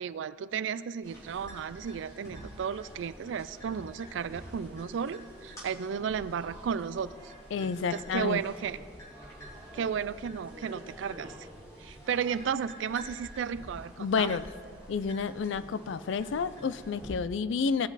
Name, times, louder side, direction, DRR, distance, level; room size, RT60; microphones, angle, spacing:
voice 1, 0.0-7.3 7.9-8.8 9.7-11.5 11.8-14.4, right 7 dB, 70° right, 16 dB, 0.3 m, -34 dB
sound 1, 1.0-17.1, equal, 15° left, 2.7 m, -48 dB
voice 2, 7.5-8.4 14.0-14.5 14.9-17.9, left 5 dB, 70° left, 15 dB, 0.4 m, -30 dB
18.0 x 6.0 x 4.0 m, 2.2 s
head